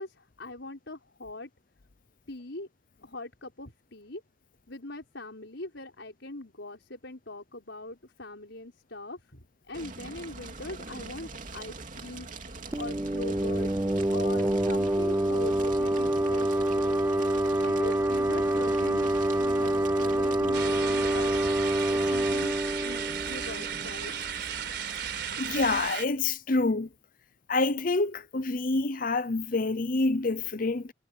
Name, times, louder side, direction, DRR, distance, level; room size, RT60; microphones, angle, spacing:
voice 1, 0.0-1.5 2.3-2.7 3.0-4.2 4.7-17.2 17.6-21.5 21.8-24.1, left 2 dB, 70° left, 5.2 m, -41 dB
Fire, 9.7-25.9, right 3 dB, 45° right, 2.8 m, -43 dB
sound 1, 12.7-24.1, right 1 dB, 15° right, 0.5 m, -27 dB
sound 2, 20.5-26.0, right 8 dB, 60° right, 4.3 m, -35 dB
voice 2, 25.4-26.9 27.5-30.9, left 3 dB, 45° left, 0.7 m, -27 dB
head